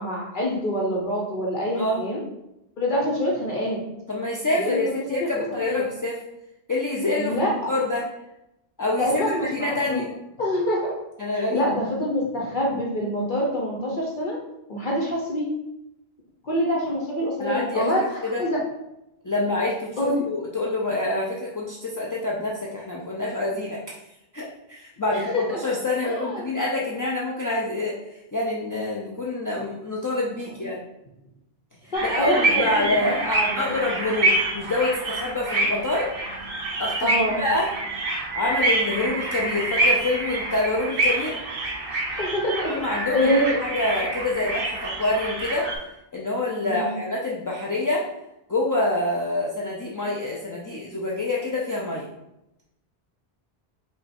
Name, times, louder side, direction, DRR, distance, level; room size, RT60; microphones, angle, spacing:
voice 1, 0.0-2.2 2.8-3.8 4.5-5.9 7.2-7.7 9.0-10.0 10.4-10.9 11.5-14.4 14.7-15.5 16.4-18.6 20.0-20.2 25.1-25.6 26.0-26.4 31.9-33.7 37.0-37.4 42.2-42.7 43.1-43.6 46.7-46.9, equal, 55° left, -3 dB, 0.9 m, -26 dB
voice 2, 4.1-6.2 6.7-8.0 8.8-10.1 11.2-11.6 17.4-17.9 18.2-18.4 19.2-24.0 24.3-27.9 28.3-30.8 31.8-36.1 36.8-37.7 38.3-41.4 42.7-43.3 43.6-45.7 46.1-48.1 48.5-52.1, left 2 dB, 30° left, -4 dB, 0.3 m, -26 dB
sound 1, 31.9-45.8, right 2 dB, 65° right, 1.2 m, -26 dB
5.4 x 2.3 x 4.2 m, 0.89 s
omnidirectional pair, 1.1 m